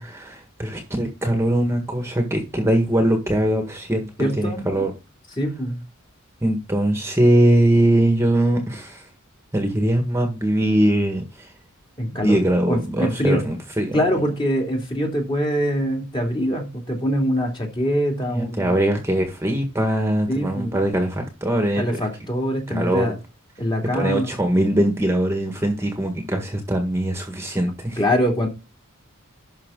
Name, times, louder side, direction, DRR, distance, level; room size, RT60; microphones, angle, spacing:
voice 1, 0.0-4.9 6.4-9.1 9.5-11.5 12.1-14.0 18.3-21.8 22.7-23.1 23.9-28.0, right 1 dB, 15° right, 4 dB, 1.6 m, -21 dB
voice 2, 4.2-4.8 5.4-5.8 12.0-12.4 12.7-13.4 13.9-18.8 20.3-20.8 21.8-23.1 23.6-24.4 28.0-28.5, equal, 20° left, 1 dB, 2.9 m, -23 dB
12.0 x 5.6 x 3.8 m, 0.29 s
head